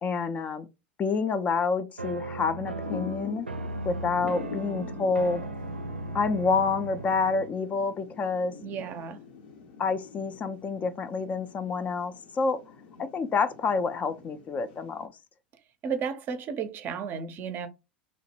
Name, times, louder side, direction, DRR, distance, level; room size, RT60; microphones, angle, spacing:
voice 1, 0.0-0.7 1.0-3.5 3.8-5.4 6.1-8.5 9.8-12.6 13.0-15.1, left 4 dB, 25° left, 0.3 m, -28 dB
sound 1, 2.0-7.5, right 2 dB, 90° right, 0.4 m, -37 dB
Thunder / Rain, 2.8-15.1, left 5 dB, 60° left, 0.7 m, -46 dB
voice 2, 8.6-9.2 15.8-17.7, right 6 dB, 35° right, 0.5 m, -33 dB
2.9 x 2.1 x 3.1 m
figure-of-eight pair, 85°, 6 cm